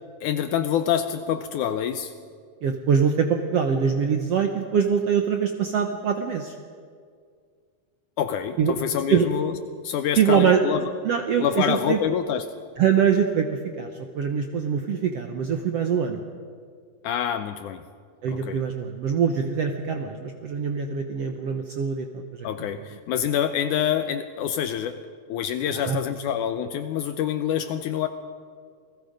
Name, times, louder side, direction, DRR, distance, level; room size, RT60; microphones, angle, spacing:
voice 1, 0.2-2.1 8.2-9.6 9.8-10.9 11.4-12.5 17.0-17.8 18.3-18.6 22.4-28.1, left 9 dB, 80° left, 9 dB, 1.9 m, -26 dB
voice 2, 2.6-6.5 8.6-8.7 9.1-9.3 10.2-10.6 11.0-12.0 12.8-13.5 13.8-13.9 14.1-16.2 18.2-22.5 25.8-26.0, right 7 dB, 70° right, 5 dB, 1.5 m, -23 dB
29.0 x 19.5 x 5.2 m, 2.1 s
omnidirectional pair, 4.2 m